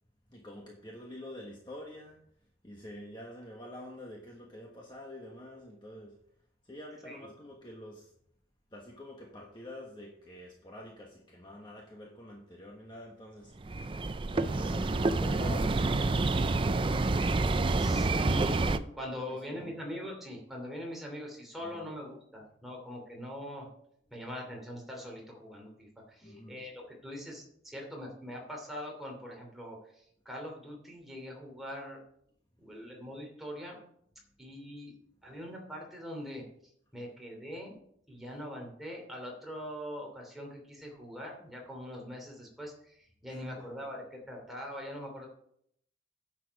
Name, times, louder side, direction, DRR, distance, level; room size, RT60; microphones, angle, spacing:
voice 1, 0.3-2.2 2.6-6.2 6.6-8.1 8.7-13.6 14.3-16.2 19.3-19.8 21.6-21.9 26.2-26.6 43.3-43.7, left 1 dB, 20° left, -1 dB, 1.3 m, -47 dB
sound 1, 13.6-18.8, right 2 dB, 25° right, 0.4 m, -28 dB
voice 2, 17.8-23.7 24.1-32.0 32.6-33.8 34.4-34.9 35.2-36.4 36.9-37.8 38.1-45.3, equal, ahead, -1 dB, 2.8 m, -42 dB
10.5 x 7.5 x 4.8 m, 0.68 s
head